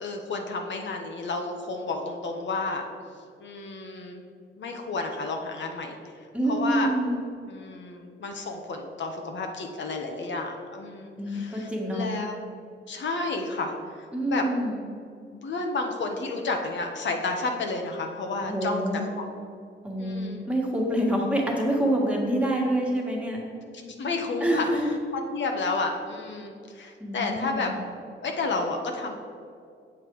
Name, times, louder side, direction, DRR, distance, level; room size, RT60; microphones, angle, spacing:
voice 1, 0.0-2.8 3.4-4.2 4.6-6.0 6.5-6.9 7.4-12.4 12.9-14.5 15.4-19.3 20.0-20.4 23.7-27.7 28.2-29.1, left 3 dB, 70° left, 3 dB, 1.1 m, -31 dB
voice 2, 6.3-7.2 11.2-12.1 14.1-14.8 18.4-19.1 19.8-23.4 24.4-24.9 27.0-27.7, right 1 dB, 5° right, -2 dB, 1.7 m, -26 dB
8.2 x 7.4 x 4.7 m, 2.5 s
wide cardioid pair, 135°, 20 cm